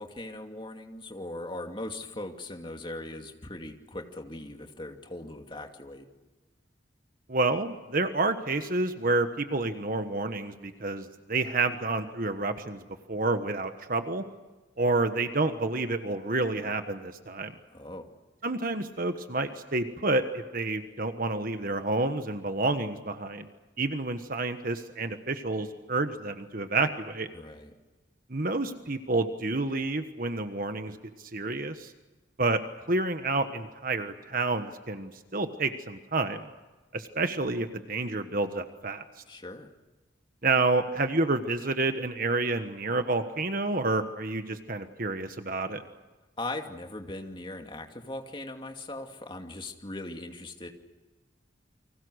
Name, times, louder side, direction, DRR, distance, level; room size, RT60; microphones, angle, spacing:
voice 1, 0.0-6.1 17.7-18.1 27.3-27.7 39.3-39.7 46.4-50.7, left 2 dB, 25° left, 3 dB, 2.5 m, -39 dB
voice 2, 7.3-12.8 13.1-14.2 14.8-17.5 18.4-23.5 23.8-27.3 28.3-31.9 32.4-32.6 32.9-36.5 36.9-39.0 40.4-45.8, right 3 dB, 50° right, 8 dB, 1.4 m, -29 dB
30.0 x 25.0 x 6.5 m, 1.2 s
head